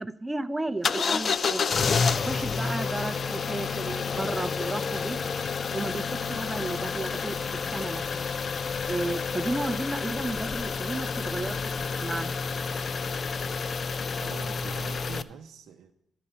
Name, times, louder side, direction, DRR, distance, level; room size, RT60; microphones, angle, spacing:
voice 1, 0.0-1.6 2.2-5.2 5.7-7.4 7.7-8.3 8.9-12.3, right 2 dB, 15° right, 0.4 m, -33 dB
sound 1, 0.8-15.2, left 5 dB, 50° left, 0.4 m, -29 dB
voice 2, 14.2-15.9, right 7 dB, 80° right, 0.5 m, -44 dB
12.0 x 4.3 x 6.7 m
cardioid pair, 85°, 0 cm